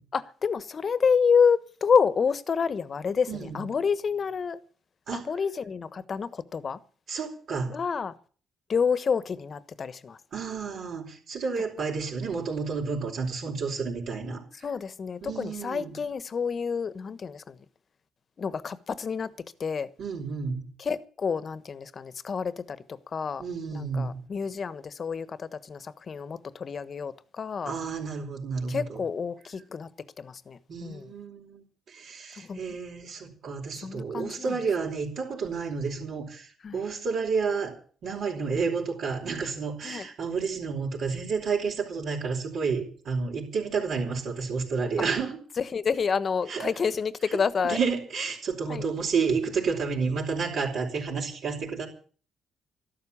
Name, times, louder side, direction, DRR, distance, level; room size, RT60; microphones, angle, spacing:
voice 1, 0.1-3.3 3.5-4.6 5.1-6.8 7.7-8.1 8.7-10.2 14.6-17.5 18.4-19.3 19.6-19.9 20.8-22.8 23.1-23.4 23.7-27.7 28.7-29.9 30.2-31.1 32.4-32.6 33.8-34.6 36.6-36.8 39.8-40.1 45.6-47.8 48.7-48.8, left 6 dB, 45° left, 1.3 m, -28 dB
voice 2, 3.3-3.6 5.1-5.3 7.1-7.7 10.3-14.7 15.2-16.0 20.0-20.6 23.4-24.2 27.6-29.0 30.7-37.7 38.0-45.4 46.5-46.7 47.3-47.4 47.6-51.9, right 5 dB, 65° right, 4.8 m, -30 dB
14.0 x 12.0 x 8.6 m
cardioid pair, 90°, 0 cm